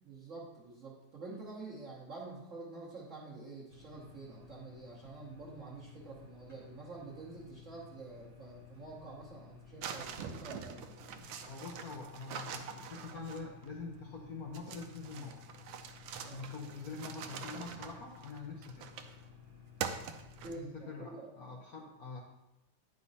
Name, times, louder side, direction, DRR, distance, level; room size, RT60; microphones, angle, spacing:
voice 1, 0.1-10.9 16.2-16.5 20.4-21.6, right 3 dB, 45° right, -5 dB, 1.4 m, -48 dB
sound 1, 3.7-20.5, left 7 dB, 10° left, 1.1 m, -56 dB
sound 2, 9.8-13.7 14.5-19.2 19.8-20.8, right 7 dB, 80° right, 1.4 m, -44 dB
voice 2, 11.5-15.5 16.3-18.9 20.5-22.2, left 4 dB, 60° left, -1 dB, 1.2 m, -45 dB
9.8 x 5.2 x 4.1 m, 0.94 s
omnidirectional pair, 2.1 m